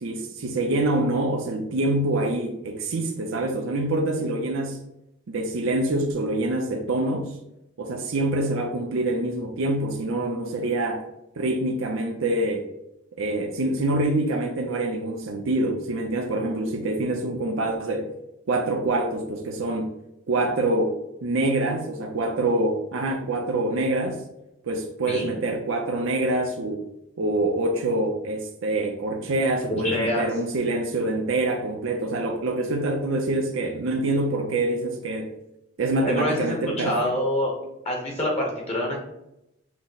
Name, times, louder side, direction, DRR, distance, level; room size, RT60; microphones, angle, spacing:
voice 1, 0.0-4.8 5.3-7.3 7.8-11.0 11.4-12.6 13.2-18.1 18.5-19.9 20.3-24.2 24.6-26.9 27.2-35.3 35.8-37.1, right 2 dB, 70° right, 3 dB, 0.5 m, -25 dB
voice 2, 29.7-30.2 36.0-37.5 37.8-39.0, left 1 dB, 30° left, -2 dB, 0.9 m, -26 dB
6.1 x 2.0 x 3.8 m, 0.87 s
head